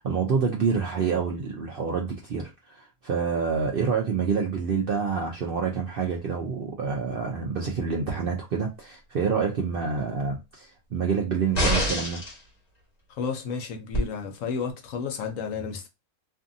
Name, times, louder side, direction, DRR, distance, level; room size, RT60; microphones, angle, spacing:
voice 1, 0.0-12.2, right 5 dB, 65° right, 0.5 m, -27 dB
sound 1, 11.5-12.4 13.9-14.0, equal, 30° left, 1.0 m, -25 dB
voice 2, 13.1-15.9, left 5 dB, 70° left, 1.0 m, -32 dB
2.6 x 2.6 x 2.6 m
omnidirectional pair, 1.5 m